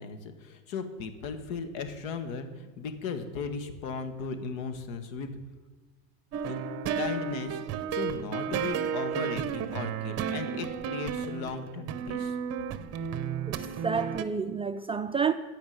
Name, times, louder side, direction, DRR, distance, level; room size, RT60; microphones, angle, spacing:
voice 1, 0.0-5.4 6.5-6.6 6.9-12.4, left 5 dB, 80° left, 1.7 m, -37 dB
sound 1, 6.3-14.2, right 7 dB, 40° right, 0.9 m, -33 dB
voice 2, 13.5-15.3, right 6 dB, 15° right, 0.4 m, -30 dB
14.5 x 5.3 x 9.2 m
supercardioid pair, 130°, 40 cm